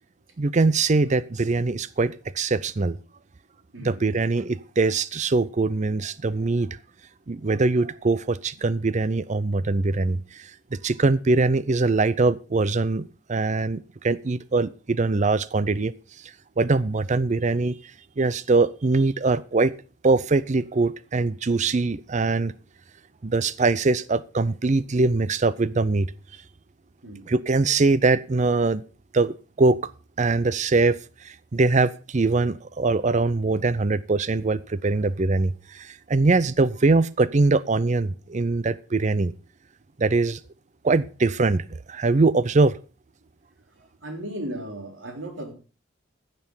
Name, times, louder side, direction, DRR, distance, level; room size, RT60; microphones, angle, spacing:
voice 1, 0.4-3.0 3.8-6.7 7.3-15.9 16.6-17.8 18.2-19.7 20.0-22.5 23.2-26.1 27.3-28.8 29.1-29.8 30.2-31.0 31.2-39.3 40.0-40.4 40.8-42.7, right 3 dB, 40° right, 0.5 m, -22 dB
voice 2, 44.0-45.5, right 1 dB, 85° right, 3.6 m, -36 dB
15.5 x 6.8 x 5.5 m
head